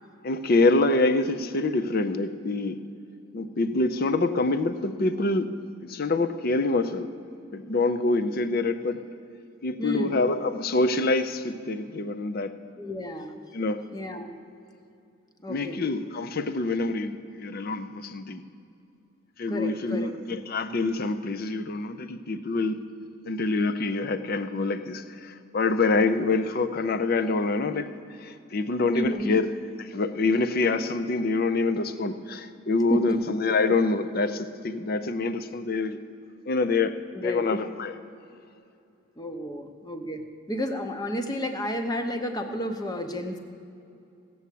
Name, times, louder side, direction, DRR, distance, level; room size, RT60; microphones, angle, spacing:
voice 1, 0.2-2.8 3.3-5.6 5.8-7.1 7.5-9.0 9.6-12.5 13.5-13.8 15.5-18.4 19.4-22.8 23.3-27.9 28.2-29.5 29.8-36.0 36.5-38.0, left 3 dB, 45° left, 11 dB, 0.5 m, -26 dB
voice 2, 9.8-10.2 12.7-13.4 13.9-14.3 15.4-15.8 19.5-20.1 28.9-29.4 32.9-33.2 37.1-37.4 39.2-40.2 40.5-43.4, left 1 dB, 20° left, 6 dB, 0.8 m, -31 dB
16.5 x 7.0 x 8.3 m, 2.7 s
head